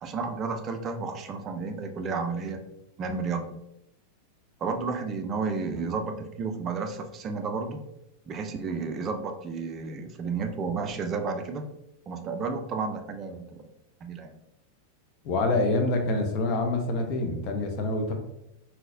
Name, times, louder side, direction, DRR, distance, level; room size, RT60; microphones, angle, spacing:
voice 1, 0.0-2.6 3.0-3.6 4.6-7.8 8.3-11.6 12.1-13.6 14.0-14.3, right 4 dB, 30° right, 6 dB, 0.4 m, -32 dB
voice 2, 15.2-18.1, left 2 dB, 40° left, 4 dB, 0.6 m, -26 dB
3.8 x 2.8 x 2.5 m, 0.84 s
figure-of-eight pair, 90°, 0 cm